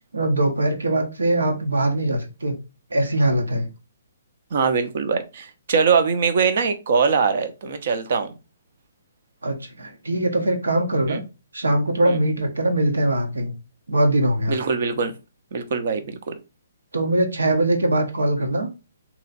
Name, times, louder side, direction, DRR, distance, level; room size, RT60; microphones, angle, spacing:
voice 1, 0.1-2.6 2.9-3.7 9.4-11.2 11.5-13.5 13.9-14.6 16.9-18.7, right 1 dB, 80° right, 1.0 m, -22 dB
voice 2, 4.5-8.3 11.1-11.2 12.1-12.2 14.5-15.1 15.5-16.3, right 5 dB, 55° right, 0.8 m, -22 dB
3.2 x 3.0 x 3.9 m
figure-of-eight pair, 135°, 0 cm